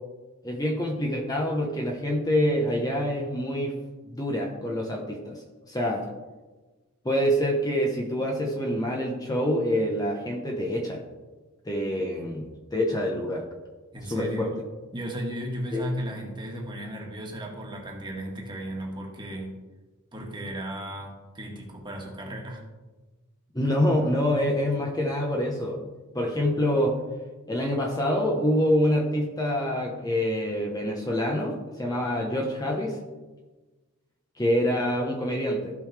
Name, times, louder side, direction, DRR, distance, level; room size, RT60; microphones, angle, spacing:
voice 1, 0.4-3.7 4.1-6.0 7.0-11.0 11.6-12.4 12.7-13.4 14.1-14.5 15.7-15.8 23.5-25.8 26.1-26.9 27.5-33.0 34.4-35.7, equal, 15° left, -1 dB, 1.0 m, -26 dB
voice 2, 13.9-14.5 14.9-19.6 20.1-22.6, equal, 20° right, -1 dB, 1.8 m, -35 dB
15.0 x 5.6 x 3.4 m, 1.2 s
head